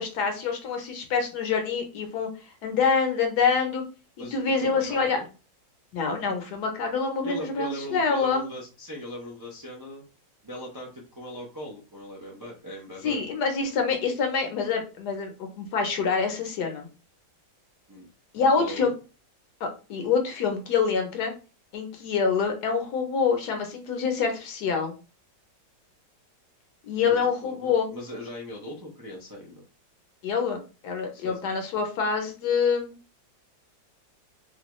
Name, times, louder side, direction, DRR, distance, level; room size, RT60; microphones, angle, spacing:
voice 1, 0.0-2.3 2.6-3.8 4.3-5.2 5.9-8.4 13.0-16.9 18.3-18.9 19.6-21.3 21.7-24.9 26.9-27.9 30.2-32.9, left 5 dB, 70° left, 5 dB, 1.3 m, -26 dB
voice 2, 4.2-5.3 6.0-6.2 7.2-10.0 10.4-13.2 17.9-18.1 18.6-18.9 27.0-29.6 31.1-31.4, left 1 dB, 30° right, -4 dB, 0.4 m, -39 dB
3.7 x 2.3 x 3.0 m, 0.32 s
omnidirectional pair, 1.9 m